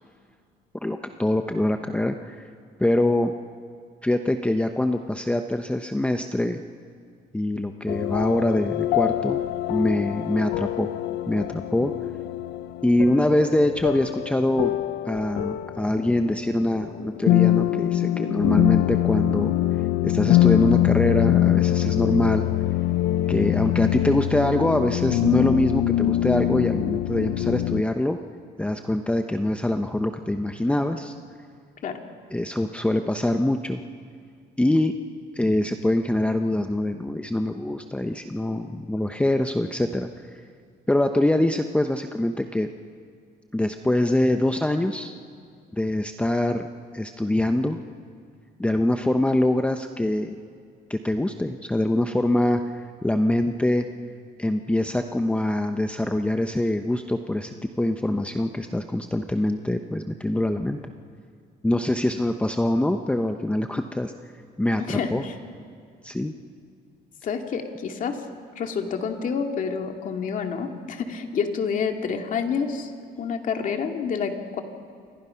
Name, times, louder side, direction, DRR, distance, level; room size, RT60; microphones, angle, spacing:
voice 1, 0.8-2.4 2.8-3.3 4.0-6.6 7.3-9.4 9.7-10.9 11.3-11.9 12.8-14.7 15.1-19.6 20.0-22.5 23.3-28.2 28.6-31.1 32.3-33.8 34.6-34.9 35.3-40.1 40.9-42.7 43.5-45.1 45.7-46.7 46.9-47.8 48.6-50.4 50.9-53.8 54.4-60.8 61.6-64.1 64.6-65.2 66.0-66.3, left 1 dB, 5° left, 6 dB, 0.9 m, -24 dB
sound 1, 7.9-27.8, left 14 dB, 80° left, 0.6 m, -24 dB
voice 2, 64.8-65.3 67.2-68.2 68.6-72.9 73.2-74.6, left 6 dB, 50° left, 4 dB, 2.5 m, -28 dB
28.0 x 25.0 x 5.8 m, 2.2 s
cardioid pair, 110°, 17 cm